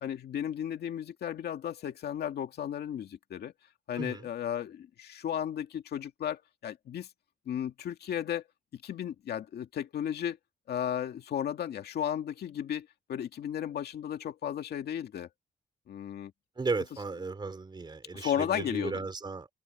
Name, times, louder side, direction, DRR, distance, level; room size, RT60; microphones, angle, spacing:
voice 1, 0.0-3.5 3.9-7.1 7.5-8.4 8.7-10.4 10.7-15.3 15.9-16.3 18.1-19.0, left 9 dB, 80° left, 2.2 m, -34 dB
voice 2, 4.0-4.3 16.6-19.5, right 3 dB, 25° right, 3.6 m, -35 dB
cardioid pair, 125°, 17 cm